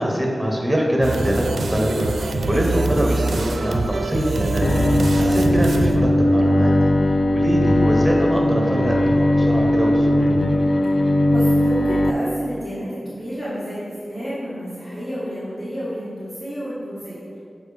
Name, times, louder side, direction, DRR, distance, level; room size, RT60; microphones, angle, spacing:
voice 1, 0.0-6.7 7.0-10.4, equal, ahead, -1 dB, 1.0 m, -24 dB
sound 1, 1.0-6.8, right 3 dB, 80° right, 0.4 m, -24 dB
Bowed string instrument, 4.6-12.1, left 1 dB, 60° left, 0.3 m, -18 dB
voice 2, 11.2-17.4, equal, 35° left, -11 dB, 1.6 m, -30 dB
7.0 x 5.0 x 3.4 m, 2.4 s
wide cardioid pair, 80°, 0 cm